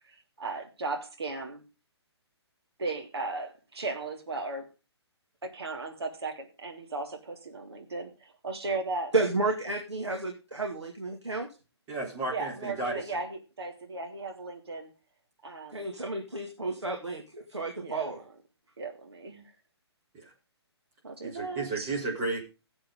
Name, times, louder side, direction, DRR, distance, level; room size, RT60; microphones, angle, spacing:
voice 1, 0.0-1.6 2.8-4.7 5.4-9.1 12.3-14.9 15.4-15.9 17.8-18.2 18.8-19.5 21.0-21.9, right 3 dB, 65° right, 2 dB, 3.2 m, -36 dB
voice 2, 9.1-11.5 15.7-18.2, right 3 dB, 80° right, 2 dB, 2.4 m, -31 dB
voice 3, 11.9-13.0 20.1-20.3 21.2-22.4, right 3 dB, 25° right, -2 dB, 3.9 m, -33 dB
17.0 x 7.9 x 3.9 m, 0.31 s
figure-of-eight pair, 130°, 14 cm